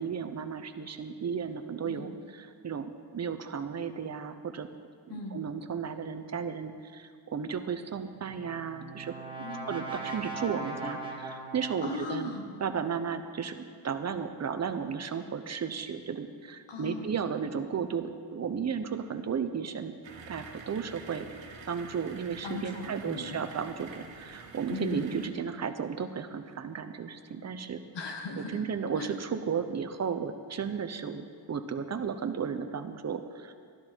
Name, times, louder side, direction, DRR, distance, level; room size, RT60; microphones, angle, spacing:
voice 1, 0.0-2.1 2.6-4.7 5.3-9.1 9.7-12.3 12.6-19.9 20.3-21.3 21.7-27.8 28.5-33.5, right 6 dB, 40° right, 9 dB, 0.8 m, -34 dB
Brass instrument, 8.2-12.4, right 3 dB, 10° right, 1.7 m, -40 dB
voice 2, 9.4-9.8 11.8-12.4 16.7-17.1 22.4-23.4 24.7-25.1 27.9-28.6 28.9-29.1, left 3 dB, 70° left, 3 dB, 1.7 m, -38 dB
sound 1, 20.0-25.3, right 5 dB, 80° right, 1.4 m, -47 dB
13.0 x 12.0 x 4.5 m, 2.1 s
cardioid pair, 115°, 43 cm